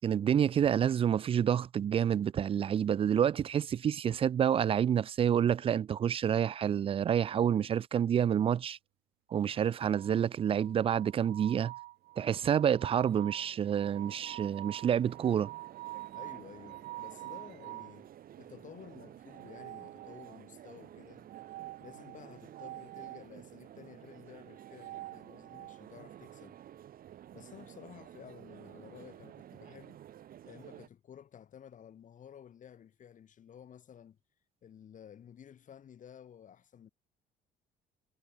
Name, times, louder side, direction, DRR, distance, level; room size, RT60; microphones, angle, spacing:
voice 1, 0.0-8.8 9.3-11.7 12.2-15.5, right 9 dB, 35° right, 0.4 m, -28 dB
sound 1, 9.9-18.0 19.3-20.5 21.3-23.3 24.5-25.8, right 18 dB, 80° right, 0.9 m, -47 dB
sound 2, 12.1-30.9, right 11 dB, 60° right, 4.0 m, -52 dB
voice 2, 16.1-18.1 18.4-21.3 21.8-26.6 27.3-30.0 30.4-34.2 34.6-36.9, left 9 dB, 50° left, 6.2 m, -53 dB
cardioid pair, 110°, 17 cm